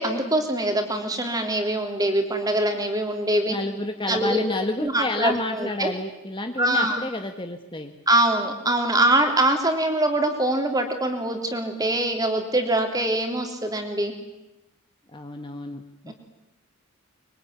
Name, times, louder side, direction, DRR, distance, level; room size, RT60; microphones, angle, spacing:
voice 1, 0.0-3.6 4.1-4.4 4.8-5.9 6.6-7.0 8.1-14.1 16.1-16.2, right 1 dB, 15° right, 5 dB, 3.2 m, -23 dB
voice 2, 3.5-7.9 15.1-16.1, left 2 dB, 20° left, 6 dB, 1.4 m, -30 dB
24.5 x 23.5 x 9.6 m, 0.96 s
head